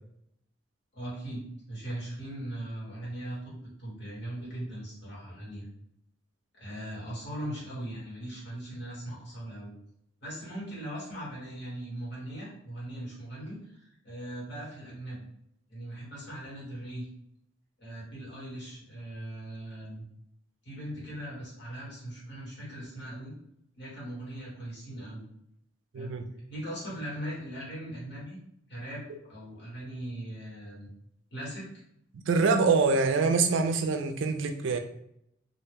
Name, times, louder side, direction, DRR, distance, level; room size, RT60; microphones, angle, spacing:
voice 1, 0.9-1.4 1.7-5.6 6.5-9.7 10.2-15.2 15.7-17.1 17.8-20.0 20.6-23.3 23.8-25.2 25.9-26.1 26.5-28.4 28.7-30.9 31.3-31.7, right 1 dB, 55° left, -6 dB, 1.3 m, -39 dB
voice 2, 25.9-26.3 32.3-34.8, right 4 dB, 70° right, 6 dB, 0.3 m, -25 dB
2.4 x 2.2 x 3.4 m, 0.75 s
head